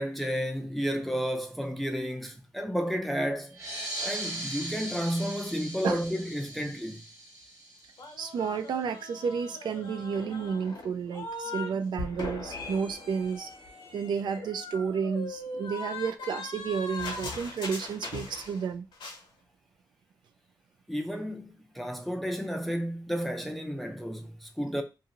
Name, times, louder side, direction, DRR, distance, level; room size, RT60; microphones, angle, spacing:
voice 1, 0.0-3.6 4.0-7.0 11.5-11.6 20.9-24.8, equal, ahead, 0.4 m, -32 dB
sound 1, 3.5-8.6, right 1 dB, 40° right, 1.1 m, -39 dB
sound 2, 8.0-11.7 12.0-18.7 18.9-19.2, left 3 dB, 80° left, 0.9 m, -40 dB
voice 2, 8.2-13.5 13.9-18.9, right 6 dB, 70° right, 0.4 m, -31 dB
2.6 x 2.5 x 2.8 m
cardioid pair, 105°, 8 cm